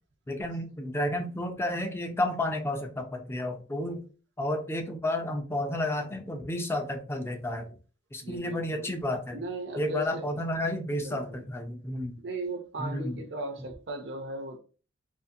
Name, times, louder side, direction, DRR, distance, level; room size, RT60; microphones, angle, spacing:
voice 1, 0.3-4.0 4.4-7.8 8.1-9.4 9.7-12.2 12.8-13.2, left 1 dB, 15° left, 0.3 m, -31 dB
voice 2, 8.2-8.9 9.3-10.2 11.0-11.4 12.2-14.6, right 2 dB, 60° right, 0.5 m, -37 dB
2.5 x 2.5 x 2.6 m
head